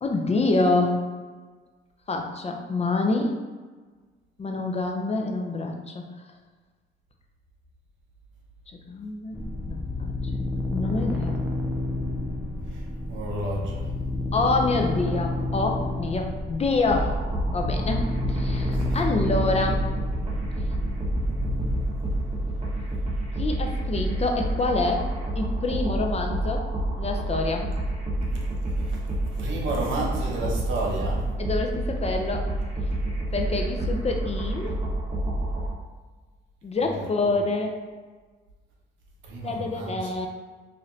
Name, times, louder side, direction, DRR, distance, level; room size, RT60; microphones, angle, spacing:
voice 1, 0.0-1.2 2.1-3.4 4.4-6.1 8.9-9.4 9.7-11.4 14.3-17.2 17.5-19.8 23.4-25.1 25.4-26.7 27.0-27.7 31.4-32.5 33.3-34.7 36.6-37.7 39.4-40.3, left 3 dB, 30° left, 2 dB, 0.6 m, -26 dB
sound 1, 9.3-23.6, left 2 dB, 5° right, 0.6 m, -30 dB
voice 2, 13.1-13.9 18.7-19.0 28.3-29.0 29.3-31.3 37.2-37.4 39.2-40.1, right 2 dB, 75° right, -1 dB, 1.0 m, -32 dB
sound 2, 16.9-35.7, right 1 dB, 35° right, 1.2 m, -28 dB
5.1 x 2.6 x 2.7 m, 1.4 s
cardioid pair, 90°, 20 cm